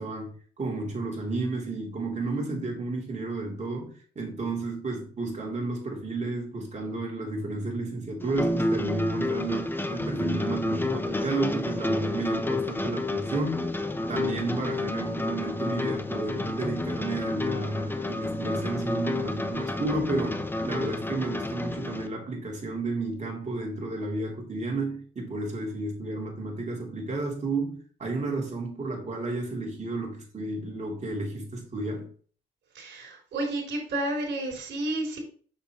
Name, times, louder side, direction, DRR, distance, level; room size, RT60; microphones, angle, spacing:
voice 1, 0.0-13.7 14.1-32.1, right 2 dB, 35° right, 3.4 m, -32 dB
sound 1, 8.2-22.1, left 2 dB, 10° left, 0.8 m, -30 dB
voice 2, 32.7-35.2, right 1 dB, 65° right, 3.8 m, -31 dB
6.6 x 6.6 x 3.1 m
cardioid pair, 90°, 20 cm